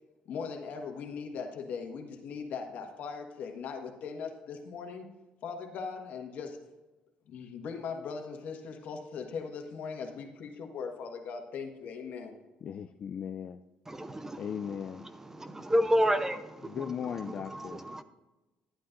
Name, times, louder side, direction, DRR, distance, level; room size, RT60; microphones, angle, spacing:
voice 1, 0.3-5.1 5.4-6.6 7.3-12.4, left 5 dB, 70° left, 1.4 m, -39 dB
voice 2, 12.6-13.6 14.4-15.1 16.6-17.9, left 8 dB, 50° left, 0.4 m, -37 dB
voice 3, 13.9-18.0, equal, 15° right, 0.7 m, -31 dB
11.5 x 8.6 x 2.6 m
cardioid pair, 95°, 3 cm